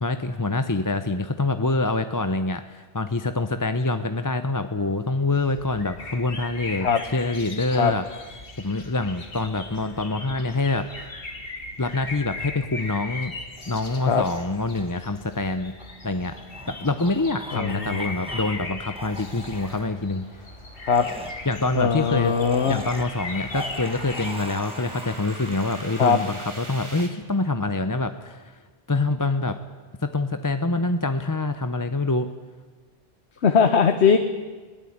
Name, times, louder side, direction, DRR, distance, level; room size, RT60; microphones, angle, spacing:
voice 1, 0.0-8.0 8.6-11.1 11.8-13.3 13.7-15.8 16.0-16.3 16.7-20.5 21.5-22.3 22.7-28.6 28.9-29.6 30.0-32.3, left 2 dB, 20° left, 9 dB, 0.7 m, -26 dB
sound 1, 5.3-24.4, left 3 dB, 60° left, 2.0 m, -39 dB
sound 2, 13.6-18.7 18.9-19.9 20.9-27.0, right 1 dB, 5° right, 1.7 m, -40 dB
voice 2, 17.5-18.1 20.8-21.1 21.7-22.8 26.0-26.2 33.4-34.2, left 6 dB, 90° left, 8 dB, 1.3 m, -20 dB
sound 3, 18.7-27.1, right 1 dB, 25° right, 2.6 m, -45 dB
22.0 x 17.5 x 8.7 m, 1.4 s
omnidirectional pair, 1.1 m